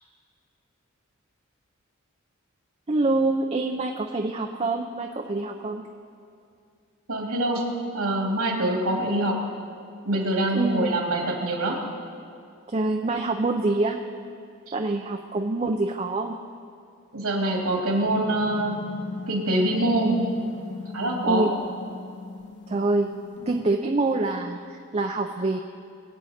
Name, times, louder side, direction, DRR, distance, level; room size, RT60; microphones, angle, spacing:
voice 1, 2.9-5.8 10.5-11.1 12.7-14.0 14.7-16.3 21.2-21.5 22.7-23.1 23.5-25.6, right 2 dB, 30° right, 3 dB, 0.5 m, -25 dB
voice 2, 7.1-7.7 7.9-9.4 10.0-11.8 14.7-14.8 17.1-18.8 19.3-20.2 20.9-21.5, right 1 dB, 85° right, -1 dB, 2.6 m, -24 dB
sound 1, 18.0-23.7, left 3 dB, 50° left, 1.2 m, -38 dB
22.5 x 8.4 x 4.2 m, 2.4 s
head